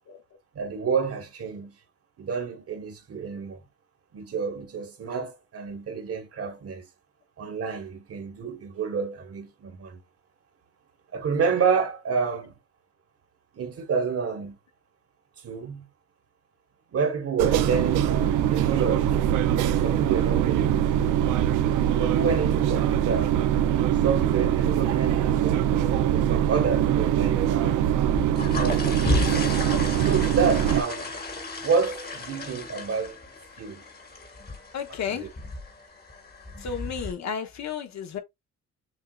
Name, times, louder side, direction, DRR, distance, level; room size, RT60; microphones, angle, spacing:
voice 1, 0.5-1.8 2.2-3.6 4.1-6.8 7.4-10.0 11.1-12.5 13.5-14.6 15.4-15.9 16.9-19.5 19.8-21.1 22.0-23.4 23.9-25.7 26.1-27.8 28.3-29.2 30.0-31.2 31.6-33.2 33.6-33.8 35.1-35.3, right 5 dB, 50° right, 1.2 m, -29 dB
sound 1, 17.4-30.8, right 10 dB, 90° right, 0.5 m, -23 dB
sound 2, 28.0-37.1, left 2 dB, 30° left, 1.5 m, -33 dB
voice 2, 34.7-35.4 36.6-38.2, left 7 dB, 65° left, 1.0 m, -33 dB
6.4 x 2.4 x 2.3 m
cardioid pair, 90°, 30 cm